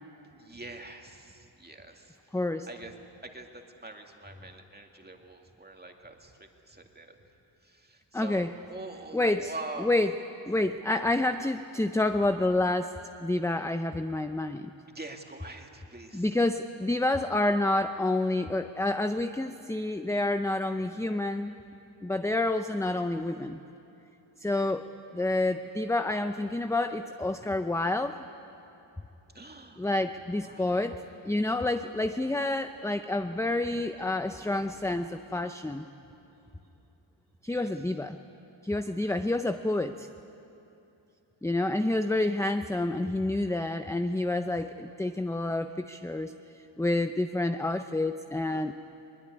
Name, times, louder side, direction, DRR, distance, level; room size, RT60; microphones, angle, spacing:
voice 1, 0.3-2.4 2.7-2.9 3.2-7.2 7.6-9.9 14.9-16.4 29.3-29.9 30.4-30.8 37.5-37.7, right 2 dB, 20° right, 3 dB, 2.3 m, -44 dB
voice 2, 2.3-2.7 8.1-8.5 9.1-9.5 9.8-10.1 10.5-14.7 16.1-21.5 22.0-23.6 24.4-24.9 25.1-28.2 29.8-31.0 31.2-35.9 37.4-38.2 38.6-40.1 41.4-46.3 46.8-48.7, left 2 dB, 5° left, 8 dB, 0.5 m, -28 dB
22.5 x 21.0 x 9.8 m, 2.8 s
wide cardioid pair, 100°, 47 cm